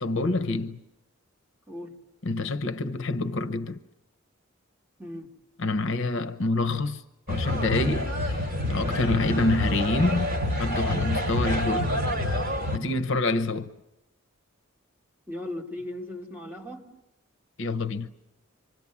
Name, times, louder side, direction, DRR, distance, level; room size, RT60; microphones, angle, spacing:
voice 1, 0.0-0.8 2.2-3.8 5.6-7.0 7.3-10.3 10.6-11.9 12.7-13.7 17.6-18.1, left 3 dB, 65° left, 0.9 m, -27 dB
voice 2, 5.0-5.3 15.3-16.9, left 1 dB, 10° right, 2.8 m, -37 dB
sound 1, 7.3-12.8, left 1 dB, 45° right, 2.8 m, -27 dB
27.0 x 24.5 x 7.3 m
head